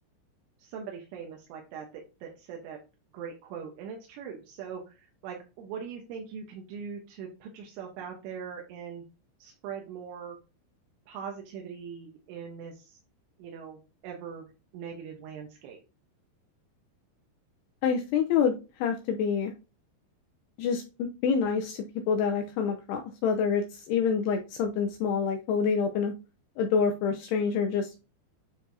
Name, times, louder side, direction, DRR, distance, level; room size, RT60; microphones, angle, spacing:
voice 1, 0.6-2.8 3.1-9.0 9.4-10.4 11.1-13.0 13.4-14.5 14.7-15.8, right 7 dB, 85° right, 1 dB, 3.5 m, -41 dB
voice 2, 17.8-19.5 20.6-26.1 26.6-27.9, left 6 dB, 85° left, 4 dB, 2.3 m, -27 dB
9.0 x 4.6 x 2.7 m, 0.30 s
omnidirectional pair, 5.4 m